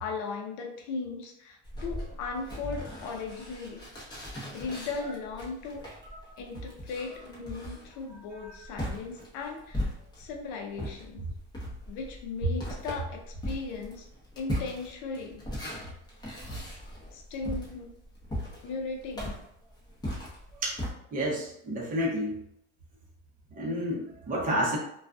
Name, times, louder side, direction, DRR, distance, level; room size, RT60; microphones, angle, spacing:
voice 1, 0.0-3.8 4.5-5.8 6.4-11.3 11.9-14.1 14.4-15.5 17.1-17.9 18.6-19.4, left 4 dB, 60° left, 1 dB, 0.6 m, -37 dB
sound 1, 1.6-10.4 10.7-20.9, equal, 10° left, 0.7 m, -38 dB
voice 2, 21.1-22.3 23.5-24.8, equal, 25° right, -2 dB, 0.7 m, -30 dB
2.3 x 2.3 x 2.4 m, 0.74 s
supercardioid pair, 125°, 34 cm